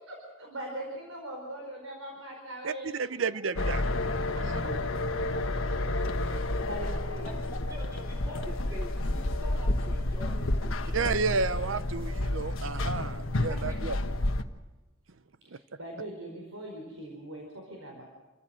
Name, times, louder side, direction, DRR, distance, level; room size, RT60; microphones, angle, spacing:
voice 1, 0.0-2.9 4.9-5.0 6.1-7.3 15.4-18.0, right 1 dB, 85° right, 0 dB, 4.9 m, -41 dB
voice 2, 2.6-3.8 4.4-4.8 10.9-14.0 15.5-15.6, right 4 dB, 65° right, 15 dB, 0.7 m, -31 dB
sound 1, 3.6-14.4, left 1 dB, 70° left, 1.3 m, -30 dB
voice 3, 7.2-11.1 13.4-13.9, equal, 15° right, -4 dB, 3.0 m, -45 dB
28.0 x 15.0 x 7.7 m, 1.1 s
head